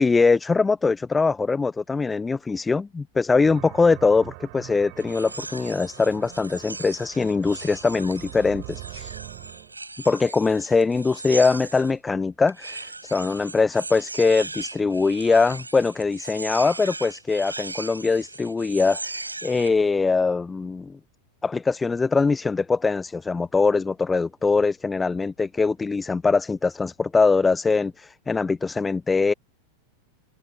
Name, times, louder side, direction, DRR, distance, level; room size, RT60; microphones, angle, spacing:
voice 1, 0.0-9.1 10.0-21.0 21.4-29.3, left 4 dB, 10° left, 0.7 m, -22 dB
sound 1, 3.4-9.7, right 32 dB, 45° right, 5.9 m, -43 dB
sound 2, 5.0-11.9 12.5-19.8, right 3 dB, 80° right, 7.7 m, -38 dB
figure-of-eight pair, 90°, 0 cm